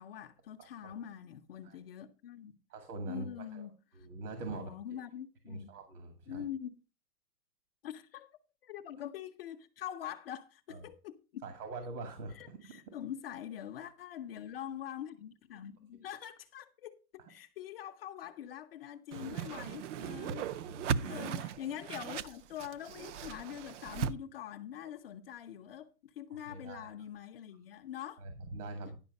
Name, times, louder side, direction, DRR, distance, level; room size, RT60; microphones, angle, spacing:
voice 1, 0.0-2.6 3.1-4.1 4.5-5.7 6.3-6.8 7.8-8.3 8.6-11.4 12.3-17.0 17.3-28.3, left 10 dB, 40° left, 0.5 m, -44 dB
voice 2, 0.6-1.0 1.6-1.8 2.7-3.7 3.9-4.7 5.5-6.4 10.7-10.9 11.4-12.7 19.1-19.7 20.1-20.2 20.6-21.3 26.5-26.9 28.2-28.9, right 3 dB, 75° right, 2.2 m, -44 dB
Whoosh swoosh swish, 19.1-24.1, right 7 dB, 50° right, 0.5 m, -38 dB
10.5 x 5.5 x 5.2 m
supercardioid pair, 165°, 46 cm